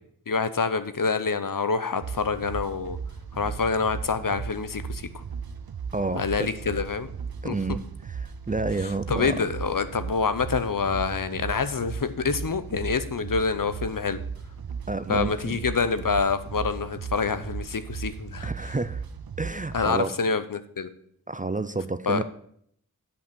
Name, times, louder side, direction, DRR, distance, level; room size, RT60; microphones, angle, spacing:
voice 1, 0.3-3.0 3.3-5.1 6.1-7.1 7.4-7.6 9.1-14.2 15.1-18.5 19.7-20.9 22.1-22.2, left 5 dB, 65° left, 12 dB, 0.7 m, -26 dB
sound 1, 2.0-19.9, right 6 dB, 80° right, 0.6 m, -36 dB
voice 2, 5.9-6.5 7.4-9.4 14.9-15.6 18.4-19.0 19.4-20.2 21.3-22.2, right 3 dB, 20° right, 12 dB, 0.4 m, -30 dB
8.2 x 5.5 x 6.9 m, 0.66 s
wide cardioid pair, 50°, 36 cm